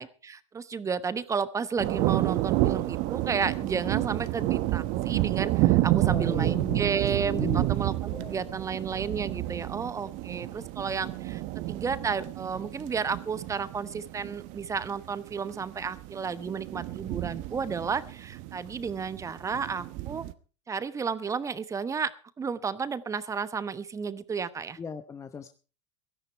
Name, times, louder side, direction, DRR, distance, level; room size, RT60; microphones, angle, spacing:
voice 1, 0.0-11.4 11.7-20.2 20.7-22.1 22.4-24.8, right 6 dB, 20° right, 15 dB, 1.1 m, -32 dB
sound 1, 1.8-20.3, right 17 dB, 50° right, 1.1 m, -30 dB
voice 2, 6.0-7.7 8.1-8.3 24.8-25.5, left 5 dB, 20° left, 9 dB, 1.0 m, -38 dB
17.0 x 13.5 x 4.5 m, 0.38 s
hypercardioid pair, 105°, 16 cm